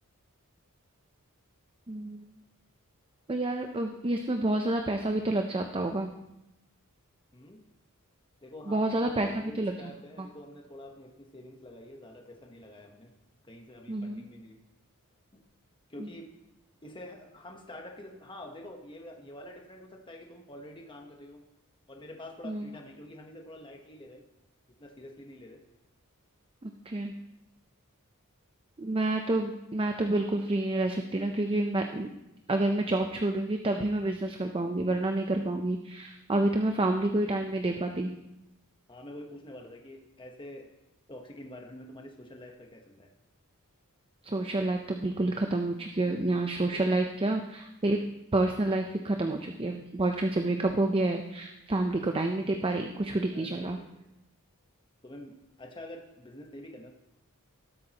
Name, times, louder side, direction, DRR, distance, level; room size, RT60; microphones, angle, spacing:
voice 1, 1.9-2.3 3.3-6.1 8.7-9.9 10.2-10.3 13.9-14.2 16.0-16.1 22.4-22.7 26.6-27.1 28.8-32.1 32.5-38.1 44.2-48.0 48.3-53.8, right 2 dB, 25° right, 4 dB, 0.6 m, -29 dB
voice 2, 8.4-13.1 13.4-14.6 15.3-15.4 15.9-16.3 16.8-21.4 21.9-24.2 24.8-25.6 38.9-40.7 41.1-43.1 46.5-47.1 53.3-53.9 55.0-56.9, left 1 dB, 20° left, 2 dB, 1.1 m, -47 dB
18.5 x 8.4 x 2.9 m, 0.90 s
head